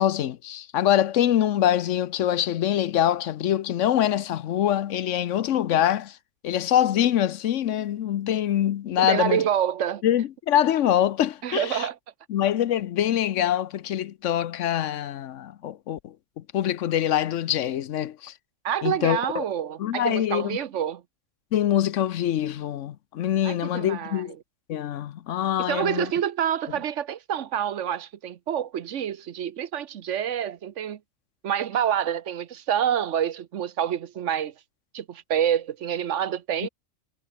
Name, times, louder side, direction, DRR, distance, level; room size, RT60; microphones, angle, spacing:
voice 1, 0.0-6.2 6.4-9.4 10.0-11.9 12.3-18.3 18.8-19.4 19.8-20.6 21.5-24.3 24.7-26.1, left 11 dB, 75° left, 1.0 m, -24 dB
voice 2, 9.0-10.0 11.4-12.0 18.6-21.0 23.4-24.2 25.7-31.0 31.4-34.5 34.9-36.7, right 9 dB, 70° right, 1.2 m, -27 dB
omnidirectional pair, 1.3 m